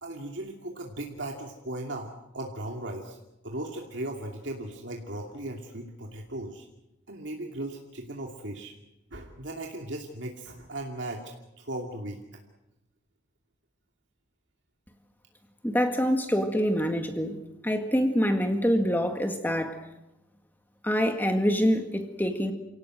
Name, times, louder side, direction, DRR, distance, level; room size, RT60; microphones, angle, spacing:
voice 1, 0.0-3.2 3.4-6.7 7.1-8.7 9.1-11.3 11.6-12.2, right 1 dB, 70° right, 1 dB, 2.6 m, -37 dB
voice 2, 15.6-17.4 17.6-19.8 20.8-22.5, equal, 10° left, 5 dB, 1.8 m, -25 dB
28.5 x 17.5 x 7.8 m, 0.94 s
head